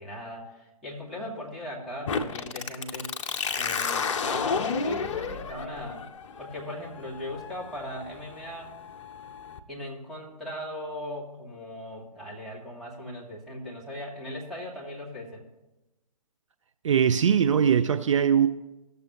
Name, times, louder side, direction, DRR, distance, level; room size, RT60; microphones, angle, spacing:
voice 1, 0.0-3.1 3.5-6.1 6.4-8.8 9.7-15.4, left 1 dB, ahead, -6 dB, 1.5 m, -38 dB
sound 1, 2.1-9.6, left 5 dB, 50° left, 0.6 m, -32 dB
voice 2, 16.8-18.5, right 8 dB, 55° right, 10 dB, 0.4 m, -21 dB
16.0 x 6.8 x 2.9 m, 1.0 s
figure-of-eight pair, 130°, 20 cm